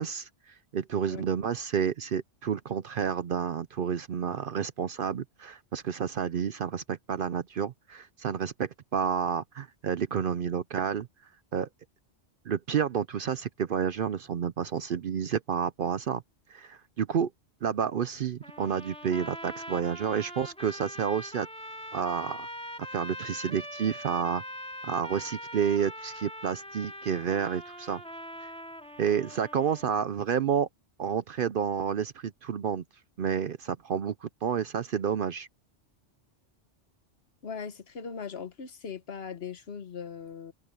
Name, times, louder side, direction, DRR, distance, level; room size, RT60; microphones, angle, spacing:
voice 1, 0.0-11.1 11.5-11.7 12.5-16.2 16.5-17.3 17.6-21.5 21.9-22.5 22.9-24.4 24.8-28.0 28.4-28.5 29.0-30.7 31.0-32.8 33.2-35.5, right 7 dB, 55° right, 0.7 m, -30 dB
sound 1, 18.4-30.0, equal, 5° left, 2.5 m, -42 dB
voice 2, 37.4-40.5, left 6 dB, 60° left, 1.3 m, -39 dB
open air
omnidirectional pair, 1.2 m